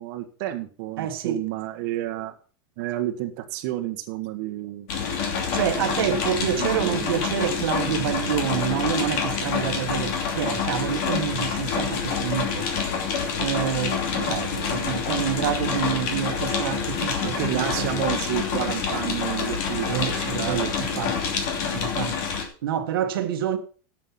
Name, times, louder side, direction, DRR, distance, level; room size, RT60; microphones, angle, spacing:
voice 1, 0.0-2.3 2.8-4.9 6.6-7.1 14.2-14.7 15.7-16.3 17.2-21.2, right 14 dB, 45° right, 1.4 m, -31 dB
voice 2, 1.0-1.4 5.5-12.7 13.4-17.9 19.9-21.2 21.7-22.2 22.6-23.6, right 10 dB, 80° right, 1.4 m, -28 dB
sound 1, 4.9-22.4, left 6 dB, 45° left, 2.9 m, -27 dB
11.5 x 7.5 x 5.8 m
supercardioid pair, 170°, 12 cm